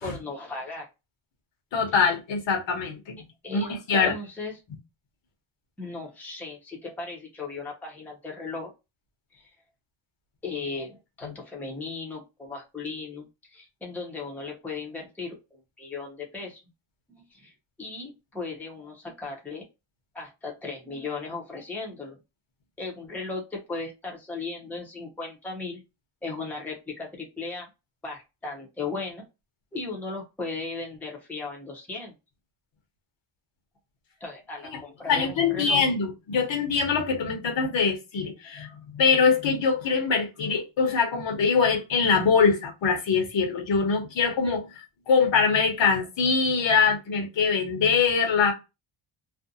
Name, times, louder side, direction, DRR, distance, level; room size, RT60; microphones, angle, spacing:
voice 1, 0.0-0.9 3.4-4.5 5.8-8.7 9.3-9.5 10.4-16.6 17.3-17.5 17.8-19.7 20.1-22.2 22.8-25.8 26.2-27.7 28.0-29.2 29.7-32.1 34.2-35.8, left 3 dB, 5° left, 0.6 m, -36 dB
voice 2, 1.7-3.2 3.5-4.1 34.7-34.8 35.1-48.5, left 5 dB, 65° left, 1.0 m, -23 dB
2.6 x 2.1 x 2.6 m
wide cardioid pair, 150°, 49 cm